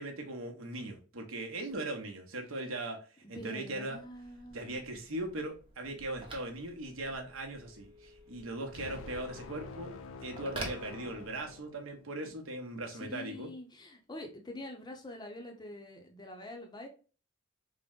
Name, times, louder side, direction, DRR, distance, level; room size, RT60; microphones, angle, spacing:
voice 1, 0.0-4.0 4.5-13.5, right 2 dB, 70° right, 2 dB, 0.8 m, -39 dB
voice 2, 3.2-4.8 12.9-16.9, left 1 dB, 20° left, 3 dB, 0.6 m, -45 dB
Telephone, 3.9-11.7, right 1 dB, 25° right, 0.8 m, -49 dB
sound 1, 8.7-12.2, left 4 dB, 70° left, 0.4 m, -47 dB
3.6 x 2.1 x 3.6 m, 0.36 s
head